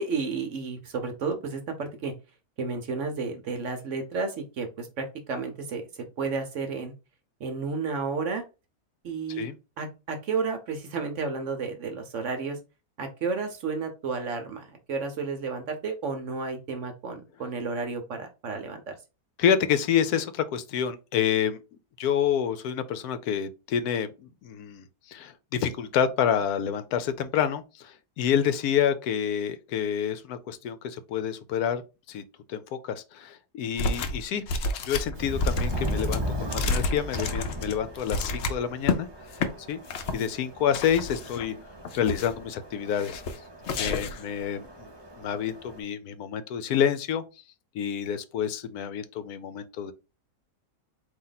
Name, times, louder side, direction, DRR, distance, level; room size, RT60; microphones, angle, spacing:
voice 1, 0.0-2.1 2.6-6.9 7.4-8.4 9.0-9.5 9.8-12.6 13.0-18.9, right 4 dB, 60° right, 1.0 m, -32 dB
voice 2, 19.4-21.6 22.0-31.8 32.1-32.2 32.5-34.4 34.8-39.1 39.7-39.8 40.1-41.5 42.0-43.2 43.7-44.9 45.1-47.2 47.7-49.9, left 8 dB, 75° left, 1.1 m, -28 dB
sound 1, 33.8-34.2 34.5-39.0 39.3-39.5 39.9-40.3 40.7-41.5 41.8-42.4 43.0-43.4 43.6-44.3, left 3 dB, 60° left, 0.8 m, -30 dB
Subway metro underground, 35.1-45.8, equal, 40° right, 0.3 m, -37 dB
4.2 x 2.8 x 3.9 m
omnidirectional pair, 1.6 m